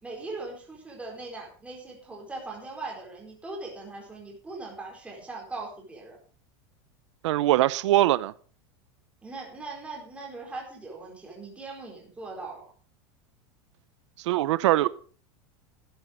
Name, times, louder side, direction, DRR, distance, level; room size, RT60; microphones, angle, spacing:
voice 1, 0.0-6.2 9.2-12.6, right 3 dB, 10° right, 4.5 m, -40 dB
voice 2, 7.2-8.3 14.2-14.9, right 15 dB, 85° right, 0.6 m, -22 dB
12.5 x 10.0 x 5.2 m
supercardioid pair, 150°, 15 cm